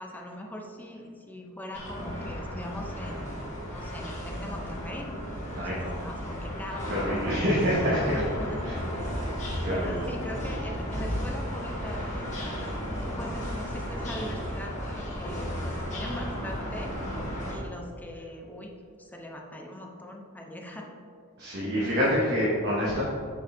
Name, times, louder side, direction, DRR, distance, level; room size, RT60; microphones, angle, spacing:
voice 1, 0.0-3.4 3.7-5.1 5.6-7.4 8.1-8.6 9.7-12.3 13.0-16.9 17.5-20.9 21.7-21.8, left 1 dB, 10° left, 1 dB, 0.6 m, -41 dB
sound 1, 1.7-17.6, equal, 35° left, 1.2 m, -34 dB
voice 2, 5.5-6.0 6.9-8.2 8.6-8.8 9.6-10.0 21.4-23.0, equal, 55° right, -7 dB, 1.2 m, -26 dB
6.5 x 6.5 x 2.7 m, 2.4 s
head